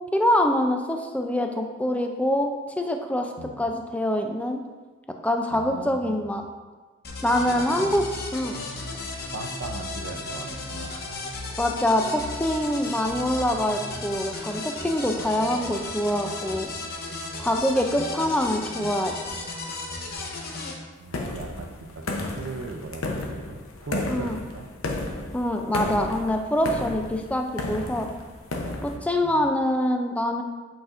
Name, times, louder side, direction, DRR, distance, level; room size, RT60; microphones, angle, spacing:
voice 1, 0.1-4.6 5.2-6.4 7.2-8.0 8.3-8.6 11.6-16.7 17.4-19.5 24.1-24.4 25.3-28.1 28.8-30.4, left 1 dB, 5° left, 4 dB, 0.4 m, -25 dB
voice 2, 3.4-3.7 5.5-6.3 7.6-8.0 9.3-11.0 20.6-20.7 21.0-24.7 29.2-29.5, right 3 dB, 70° right, 1 dB, 0.5 m, -38 dB
sound 1, 7.0-20.8, left 2 dB, 50° left, 0.9 m, -35 dB
sound 2, 21.1-29.0, left 2 dB, 85° left, 0.8 m, -33 dB
8.6 x 5.0 x 2.5 m, 1.3 s
head